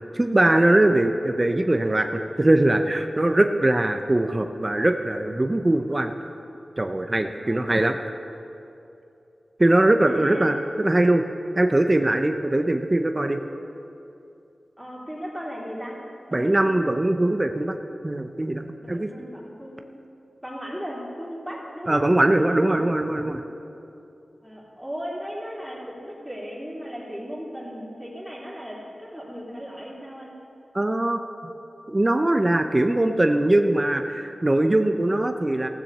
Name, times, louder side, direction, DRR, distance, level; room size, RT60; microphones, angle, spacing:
voice 1, 0.1-6.1 6.8-8.0 9.6-11.3 11.6-13.4 16.3-17.8 18.0-19.1 21.9-23.4 30.7-31.2 31.9-35.7, right 1 dB, 30° right, 6 dB, 0.6 m, -21 dB
voice 2, 7.4-7.7 10.1-10.5 14.8-15.9 16.3-16.9 18.8-19.9 20.4-23.2 24.4-30.3, equal, 5° right, -4 dB, 3.0 m, -37 dB
15.5 x 7.1 x 6.7 m, 2.8 s
wide cardioid pair, 70°, 0 cm